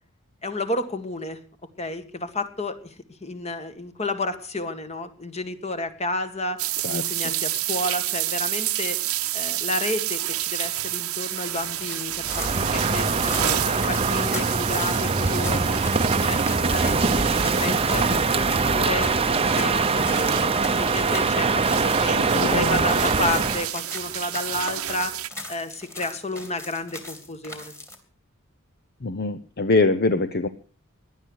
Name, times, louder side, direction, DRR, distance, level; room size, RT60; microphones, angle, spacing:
voice 1, 0.4-1.4 1.8-9.0 9.3-13.6 13.9-15.8 16.2-22.2 22.5-25.2 25.5-27.7, left 2 dB, 30° left, 9 dB, 1.8 m, -31 dB
sound 1, 6.6-25.3, right 14 dB, 85° right, 1.0 m, -30 dB
sound 2, 11.6-28.0, left 1 dB, 15° left, 3.0 m, -40 dB
Crow, 12.2-23.7, right 4 dB, 25° right, 0.8 m, -23 dB
voice 2, 22.1-22.8 29.0-30.5, left 3 dB, 45° left, 11 dB, 0.8 m, -23 dB
18.0 x 11.5 x 6.4 m, 0.40 s
head